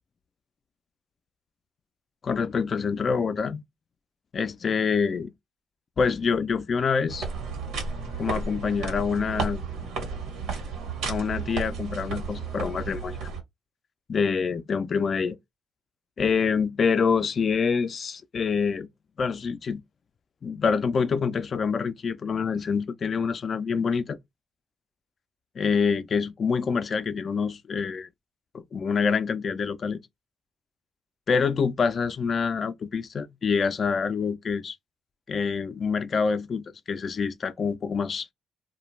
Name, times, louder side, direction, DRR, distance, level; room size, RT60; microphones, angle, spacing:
voice 1, 2.2-3.6 4.3-5.3 6.0-7.3 8.2-9.6 11.0-13.2 14.1-15.4 16.2-18.9 19.2-19.8 20.4-24.2 25.6-28.1 28.7-30.0 31.3-34.7 35.3-38.3, left 5 dB, 45° left, 0.4 m, -26 dB
sound 1, 7.1-13.4, right 5 dB, 85° right, 1.0 m, -33 dB
2.4 x 2.2 x 3.1 m
cardioid pair, 90°, 0 cm